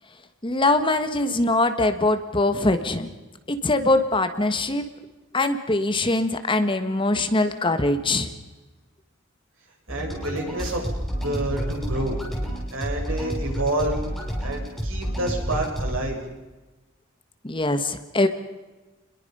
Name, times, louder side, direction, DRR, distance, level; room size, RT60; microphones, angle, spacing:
voice 1, 0.4-3.1 3.5-4.8 5.3-8.3 17.4-18.3, left 2 dB, 25° left, 9 dB, 1.5 m, -22 dB
sound 1, 9.9-15.9, equal, ahead, 6.4 m, -30 dB
voice 2, 9.9-10.8 11.2-12.2 12.7-13.9 14.4-16.2, right 1 dB, 75° right, 0 dB, 7.9 m, -28 dB
30.0 x 22.0 x 5.6 m, 1.2 s
head